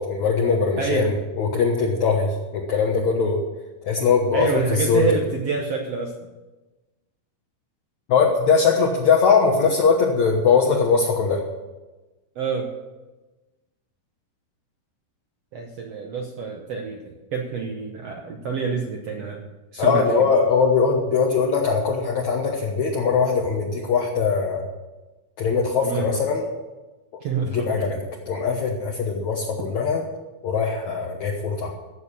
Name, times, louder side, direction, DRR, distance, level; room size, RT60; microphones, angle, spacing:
voice 1, 0.0-3.4 3.8-5.1 8.1-11.4 19.8-24.7 25.4-26.4 27.5-28.0 28.3-30.0 30.4-31.7, left 5 dB, 60° left, -1 dB, 2.2 m, -21 dB
voice 2, 0.8-1.1 4.3-6.1 12.3-12.7 15.5-20.0 25.8-26.2 27.2-27.9, right 5 dB, 75° right, 2 dB, 1.4 m, -27 dB
15.5 x 7.1 x 7.0 m, 1.1 s
omnidirectional pair, 4.4 m